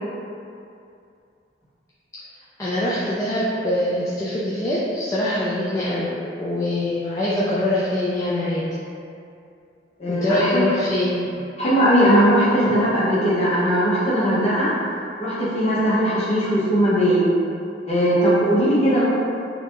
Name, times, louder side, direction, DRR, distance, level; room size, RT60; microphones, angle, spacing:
voice 1, 2.6-6.1 6.4-8.6 10.1-11.2, left 1 dB, 20° left, -9 dB, 0.4 m, -23 dB
voice 2, 10.0-10.6 11.6-14.7 15.2-17.2 17.9-19.0, equal, 35° left, -10 dB, 1.1 m, -19 dB
3.3 x 2.9 x 2.9 m, 2.5 s
head